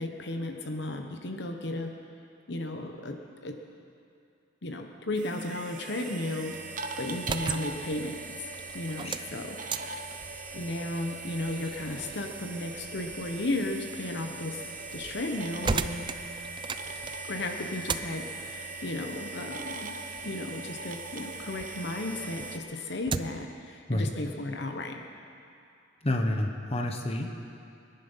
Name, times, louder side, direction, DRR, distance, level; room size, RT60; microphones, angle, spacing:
voice 1, 0.0-1.9 2.5-3.2 3.4-3.6 4.6-6.6 7.0-8.2 8.7-10.0 10.5-14.6 14.9-16.1 17.3-20.0 20.2-25.0, left 2 dB, 65° left, 4 dB, 1.1 m, -34 dB
sound 1, 5.2-22.6, right 3 dB, 45° right, 1.0 m, -40 dB
sound 2, 7.2-21.8 22.2-23.5, right 4 dB, 25° right, 0.4 m, -39 dB
voice 2, 26.0-27.3, left 1 dB, 35° left, 3 dB, 1.2 m, -29 dB
22.0 x 10.5 x 5.7 m, 2.5 s
head